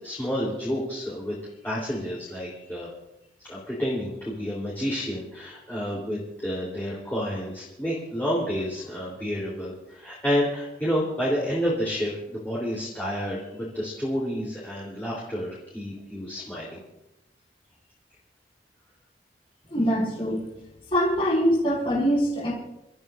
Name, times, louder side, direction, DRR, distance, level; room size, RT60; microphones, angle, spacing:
voice 1, 0.0-1.3 1.6-2.9 3.4-16.8, equal, 10° left, -7 dB, 3.8 m, -29 dB
voice 2, 19.7-20.4 20.9-22.5, equal, 30° left, -7 dB, 6.2 m, -23 dB
29.0 x 14.0 x 2.7 m, 0.87 s
head